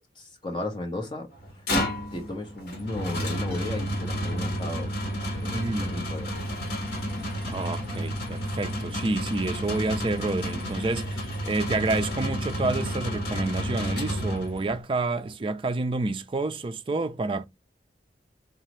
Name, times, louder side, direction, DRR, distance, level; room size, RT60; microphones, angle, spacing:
voice 1, 0.2-1.3 1.5-1.6 2.1-4.9 5.4-6.4, left 2 dB, 25° left, 1.0 m, -35 dB
sound 1, 1.4-14.8, equal, 65° left, 1.4 m, -31 dB
voice 2, 5.5-5.9 7.5-17.5, right 3 dB, 30° right, 0.4 m, -29 dB
4.0 x 2.7 x 3.1 m
head